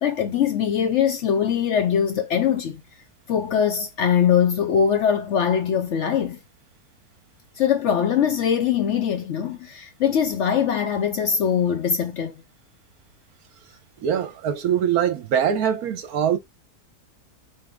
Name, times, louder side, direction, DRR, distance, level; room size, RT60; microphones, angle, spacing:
voice 1, 0.0-2.8 3.3-6.4 7.6-12.3, left 8 dB, 65° left, 0.8 m, -22 dB
voice 2, 14.0-16.4, right 8 dB, 75° right, 1.3 m, -23 dB
5.5 x 2.3 x 3.7 m
omnidirectional pair, 1.6 m